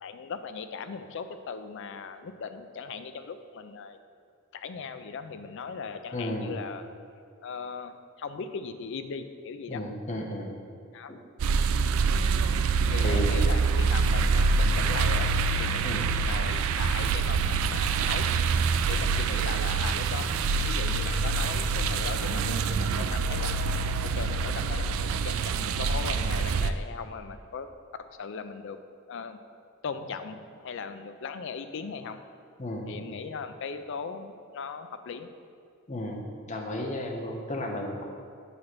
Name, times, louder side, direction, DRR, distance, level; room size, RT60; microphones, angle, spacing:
voice 1, 0.0-4.0 4.5-6.9 7.4-9.8 10.9-11.1 12.9-15.3 15.6-18.3 18.9-23.6 24.0-27.7 28.2-28.8 29.1-29.4 29.8-32.2 32.9-35.3, left 5 dB, 65° left, 10 dB, 0.4 m, -38 dB
voice 2, 6.1-6.6 9.7-10.5 11.1-11.2 13.0-13.6 15.8-16.1 32.6-33.2 35.9-38.0, left 1 dB, 35° left, 1 dB, 0.8 m, -34 dB
sound 1, 11.4-26.7, right 4 dB, 75° right, 0.3 m, -26 dB
8.2 x 3.2 x 6.0 m, 2.3 s
head